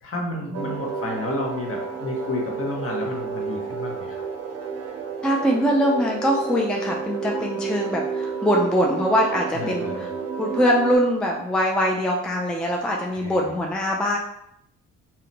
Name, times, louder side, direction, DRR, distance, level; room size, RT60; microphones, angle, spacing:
voice 1, 0.0-4.2 9.5-10.1 13.1-13.6, left 2 dB, 45° left, -1 dB, 1.0 m, -31 dB
sound 1, 0.5-11.0, right 5 dB, 55° right, 0.6 m, -31 dB
voice 2, 5.2-10.1 10.4-14.2, equal, 5° left, -1 dB, 0.4 m, -23 dB
2.8 x 2.2 x 3.9 m, 0.77 s
cardioid pair, 90°, 30 cm